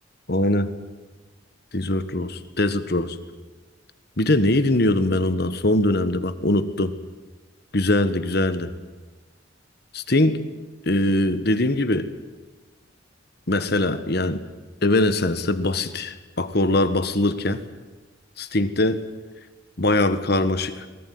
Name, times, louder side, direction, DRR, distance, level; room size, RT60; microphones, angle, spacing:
voice 1, 0.3-0.7 1.7-3.2 4.2-6.9 7.7-8.7 9.9-10.4 10.8-12.1 13.5-14.4 14.8-17.6 18.4-19.0 19.8-20.9, left 1 dB, 55° left, 11 dB, 1.5 m, -22 dB
23.0 x 19.0 x 9.6 m, 1.3 s
head